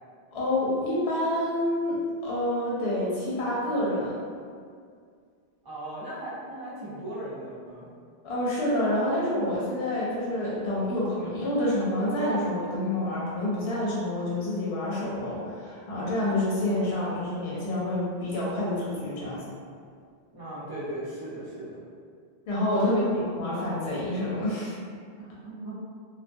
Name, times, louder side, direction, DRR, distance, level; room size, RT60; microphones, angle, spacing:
voice 1, 0.3-2.0 2.2-4.2 8.2-19.4 22.5-24.8, left 1 dB, 85° left, -6 dB, 0.8 m, -28 dB
voice 2, 5.6-7.9 20.3-21.8 22.8-23.3 25.2-25.7, right 1 dB, 30° right, -9 dB, 0.5 m, -37 dB
2.2 x 2.2 x 2.5 m, 2.1 s
omnidirectional pair, 1.0 m